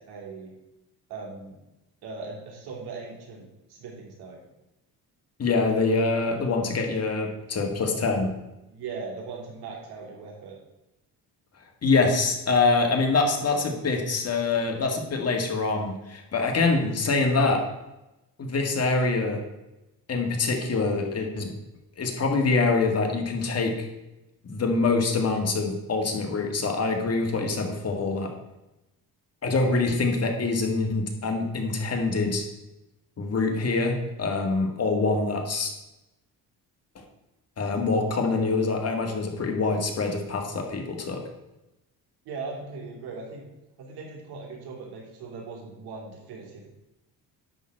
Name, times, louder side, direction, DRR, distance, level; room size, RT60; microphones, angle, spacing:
voice 1, 0.1-0.5 1.1-1.5 2.0-4.4 8.7-10.6 42.2-43.4 43.8-46.7, right 4 dB, 85° right, -2 dB, 3.3 m, -39 dB
voice 2, 5.4-8.3 11.8-17.6 18.4-19.4 20.1-21.5 22.0-23.9 24.4-28.3 29.4-32.4 33.2-35.7 37.6-41.2, left 3 dB, 40° left, 3 dB, 1.9 m, -25 dB
11.0 x 4.0 x 7.6 m, 0.96 s
cardioid pair, 110°, 37 cm